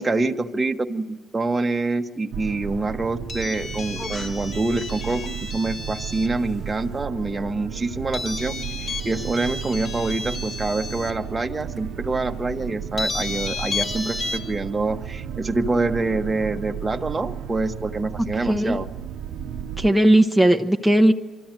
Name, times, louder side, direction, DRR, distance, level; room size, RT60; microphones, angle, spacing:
voice 1, 0.0-18.9, right 3 dB, 20° right, 5 dB, 1.0 m, -26 dB
sound 1, 2.3-19.9, right 8 dB, 85° right, 0.6 m, -34 dB
sound 2, 3.3-6.4 8.1-11.1 11.8-11.9 13.0-14.4, left 3 dB, 55° left, 2.3 m, -32 dB
voice 2, 18.5-18.8 19.8-21.1, right 1 dB, 5° left, 5 dB, 1.0 m, -17 dB
24.0 x 13.5 x 9.1 m, 1.2 s
cardioid pair, 90°, 0 cm